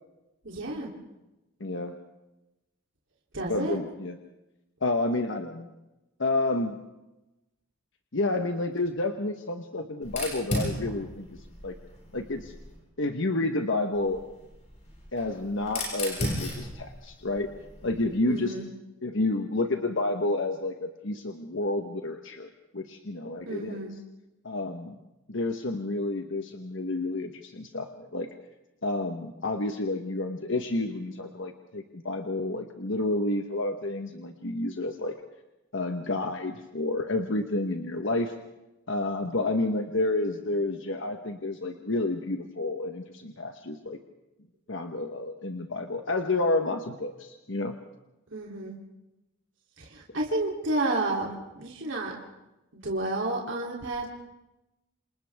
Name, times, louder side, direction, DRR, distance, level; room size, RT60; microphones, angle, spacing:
voice 1, 0.4-0.9 3.3-3.8 18.3-18.7 23.4-24.0 48.3-48.8 49.8-51.3 51.6-52.2 52.8-54.1, right 2 dB, 60° right, -2 dB, 3.2 m, -31 dB
voice 2, 1.6-2.0 3.5-4.2 4.8-5.7 6.2-6.8 8.1-11.7 12.1-12.5 13.0-14.2 15.1-17.5 17.8-18.6 19.0-24.0 24.4-25.0 25.3-28.3 28.8-35.2 35.7-38.3 38.9-44.0 44.7-47.8, left 2 dB, 60° left, 5 dB, 1.2 m, -30 dB
Fire, 10.0-12.8 13.9-18.2, left 1 dB, 35° left, 7.2 m, -36 dB
28.0 x 28.0 x 3.6 m, 0.97 s
head